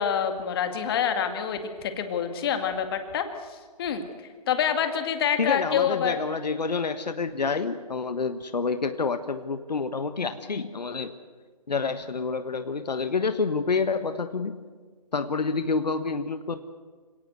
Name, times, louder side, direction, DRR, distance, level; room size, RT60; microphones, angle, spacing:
voice 1, 0.0-4.1 4.5-6.2, left 8 dB, 35° left, 7 dB, 2.1 m, -27 dB
voice 2, 5.4-11.2 11.7-14.6 15.1-16.6, left 4 dB, 75° left, 10 dB, 1.4 m, -28 dB
26.5 x 17.5 x 8.0 m, 1.5 s
figure-of-eight pair, 150°, 21 cm